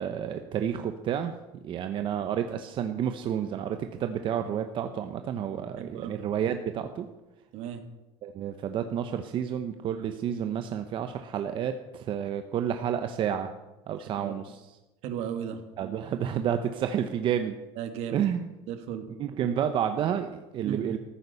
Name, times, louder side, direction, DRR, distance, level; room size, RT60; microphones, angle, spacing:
voice 1, 0.0-1.3 1.6-7.1 8.2-13.5 13.9-14.8 15.8-17.6 18.1-18.5 19.2-21.0, right 9 dB, 50° right, 7 dB, 0.9 m, -30 dB
voice 2, 5.8-6.2 7.5-7.8 14.0-14.4 15.0-15.6 17.8-18.2 18.7-19.1 20.6-20.9, right 9 dB, 70° right, 8 dB, 1.9 m, -35 dB
14.5 x 9.5 x 6.9 m, 1.0 s
cardioid pair, 115°, 11 cm